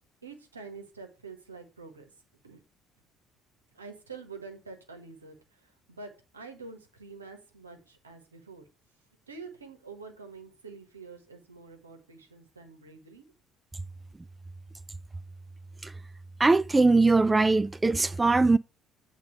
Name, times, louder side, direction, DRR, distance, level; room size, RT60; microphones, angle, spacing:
voice 1, 0.2-2.1 2.4-2.6 3.7-8.6 9.3-13.2, right 4 dB, 85° right, 1.3 m, -46 dB
voice 2, 16.4-18.6, right 3 dB, 20° right, 0.3 m, -21 dB
8.6 x 3.7 x 6.5 m
figure-of-eight pair, 55°, 0 cm